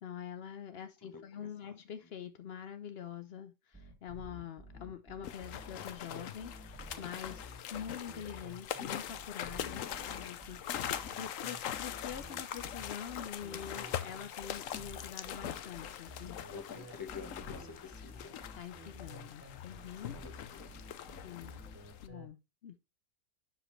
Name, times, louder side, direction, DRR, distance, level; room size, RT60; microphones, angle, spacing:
voice 1, 0.0-16.4 18.6-20.2 21.2-21.5 22.0-22.8, left 8 dB, 85° left, 0.5 m, -45 dB
voice 2, 1.0-1.5 9.6-10.3 16.5-18.4 20.0-21.5, left 5 dB, 15° left, 0.9 m, -50 dB
sound 1, 3.7-22.2, left 1 dB, 10° right, 1.8 m, -51 dB
sound 2, 5.2-22.1, left 10 dB, 65° left, 0.9 m, -42 dB
10.0 x 5.1 x 3.1 m
omnidirectional pair, 1.8 m